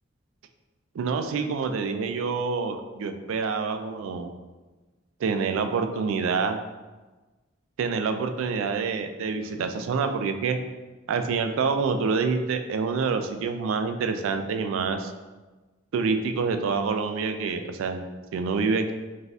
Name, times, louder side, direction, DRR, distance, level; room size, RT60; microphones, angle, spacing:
voice 1, 0.9-4.3 5.2-6.6 7.8-10.6 11.1-15.1 15.9-18.0 18.3-18.9, right 5 dB, 90° right, 7 dB, 0.3 m, -27 dB
3.9 x 2.7 x 2.4 m, 1.2 s
head